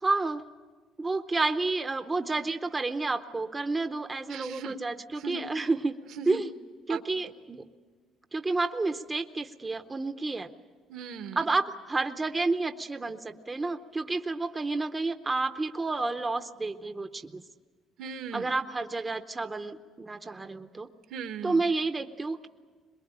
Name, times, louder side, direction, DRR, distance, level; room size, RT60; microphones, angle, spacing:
voice 1, 0.0-0.4 1.0-6.0 6.3-6.5 6.9-7.6 8.3-10.5 11.4-17.4 18.3-20.9 21.4-22.5, right 3 dB, 15° right, 8 dB, 0.7 m, -30 dB
voice 2, 4.3-4.8 5.2-5.4 6.2-6.4 6.9-7.0 10.9-11.4 18.0-18.5 21.1-21.6, right 6 dB, 80° right, 7 dB, 1.4 m, -38 dB
22.5 x 21.5 x 8.8 m, 1.5 s
cardioid pair, 140°, 0 cm